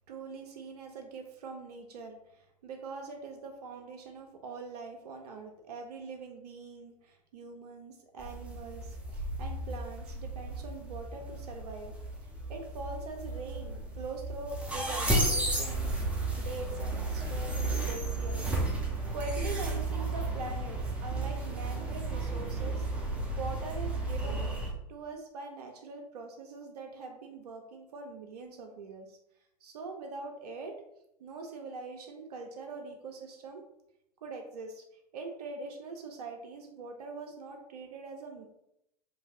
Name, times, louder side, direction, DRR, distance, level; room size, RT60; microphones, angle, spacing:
voice 1, 0.1-11.9 12.5-18.6 19.1-23.1 23.4-24.5 24.9-29.2 29.6-30.8 31.2-33.6 34.2-34.8 35.1-38.5, right 3 dB, 70° right, 3 dB, 0.5 m, -43 dB
sound 1, 8.2-24.7, right 2 dB, 5° right, 0.6 m, -33 dB
3.2 x 2.6 x 2.4 m, 0.80 s
figure-of-eight pair, 95°, 21 cm